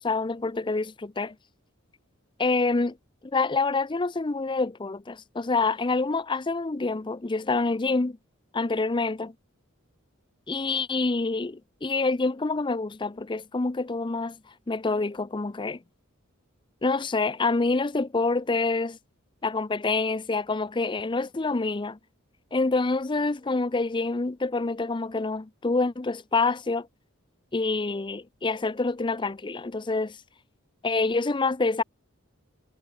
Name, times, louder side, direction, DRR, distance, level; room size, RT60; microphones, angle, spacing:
voice 1, 0.0-1.3 2.4-3.0 3.3-8.2 8.5-9.3 10.5-14.4 14.7-15.8 16.8-19.0 19.4-22.0 22.5-26.9 27.5-30.2 30.8-31.8, left 3 dB, 25° left, 0.5 m, -27 dB
head